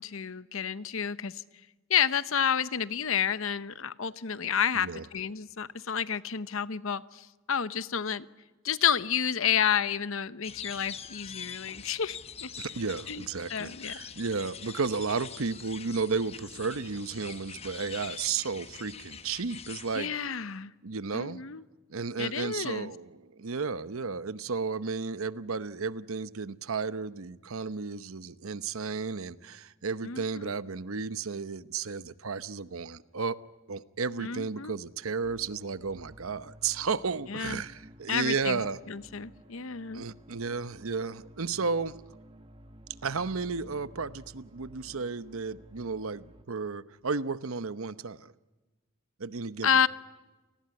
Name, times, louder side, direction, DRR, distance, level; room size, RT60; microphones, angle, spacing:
voice 1, 0.0-1.4 1.9-8.3 8.6-12.5 13.1-13.2 13.5-14.1 19.9-20.7 21.1-21.6 22.2-22.9 30.0-30.5 34.2-34.8 37.3-37.6 38.1-38.6 38.9-40.1 49.6-49.9, left 8 dB, 70° left, 15 dB, 0.8 m, -30 dB
sound 1, 10.4-20.0, left 7 dB, 30° left, 0.9 m, -44 dB
voice 2, 12.6-20.1 20.8-21.4 21.9-33.4 33.7-38.8 39.9-42.0 43.0-48.3 49.2-49.7, right 4 dB, 75° right, 14 dB, 0.9 m, -33 dB
sound 2, 35.2-46.4, right 1 dB, 25° right, 1.4 m, -53 dB
29.5 x 19.5 x 9.7 m, 1.2 s
head